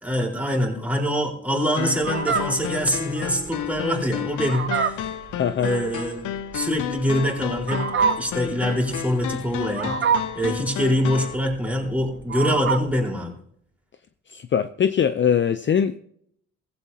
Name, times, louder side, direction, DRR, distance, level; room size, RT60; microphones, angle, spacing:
voice 1, 0.0-5.1 5.6-6.3 6.5-7.8 8.2-9.9 10.3-13.3, equal, 5° right, -1 dB, 4.4 m, -24 dB
sound 1, 1.8-11.4, left 10 dB, 80° left, 0.9 m, -32 dB
Fowl, 2.0-13.0, right 6 dB, 40° right, 0.9 m, -28 dB
voice 2, 5.3-5.7 14.3-16.0, left 8 dB, 40° left, 10 dB, 0.6 m, -22 dB
16.5 x 15.5 x 2.8 m, 0.68 s
cardioid pair, 90°, 30 cm